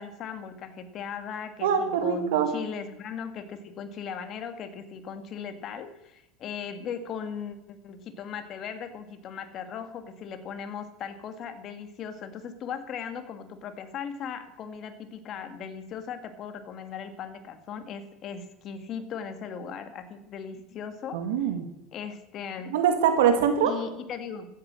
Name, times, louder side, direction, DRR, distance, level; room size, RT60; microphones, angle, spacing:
voice 1, 0.0-21.3 21.9-22.7 23.6-24.5, left 7 dB, 45° left, 9 dB, 1.8 m, -38 dB
voice 2, 1.6-2.5 21.1-21.7 22.7-23.7, right 8 dB, 90° right, 7 dB, 2.2 m, -23 dB
15.0 x 8.7 x 7.6 m, 0.89 s
supercardioid pair, 120°, 0 cm